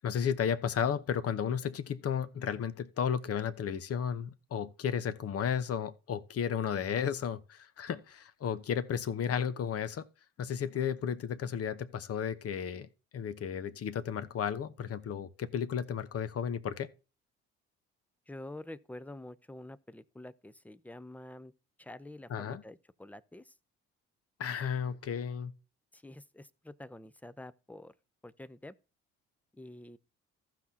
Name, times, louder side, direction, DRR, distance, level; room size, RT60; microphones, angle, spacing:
voice 1, 0.0-10.0 10.4-16.9 22.3-22.6 24.4-25.5, left 8 dB, 45° left, 0.9 m, -33 dB
voice 2, 18.3-21.5 21.8-23.5 25.9-27.9 28.2-28.7 29.5-30.0, left 1 dB, 5° left, 0.6 m, -47 dB
15.0 x 6.0 x 2.8 m
hypercardioid pair, 60°, 32 cm